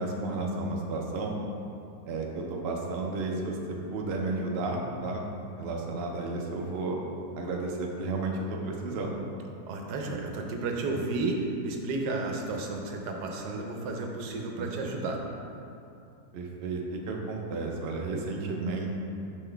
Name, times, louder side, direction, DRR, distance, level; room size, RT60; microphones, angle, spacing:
voice 1, 0.0-1.4 2.1-5.2 5.6-7.0 7.3-9.2 14.6-14.8 16.3-18.9, right 3 dB, 55° right, 0 dB, 0.7 m, -32 dB
voice 2, 9.7-15.2, right 3 dB, 80° right, 2 dB, 1.2 m, -32 dB
5.8 x 5.4 x 3.3 m, 2.6 s
omnidirectional pair, 1.7 m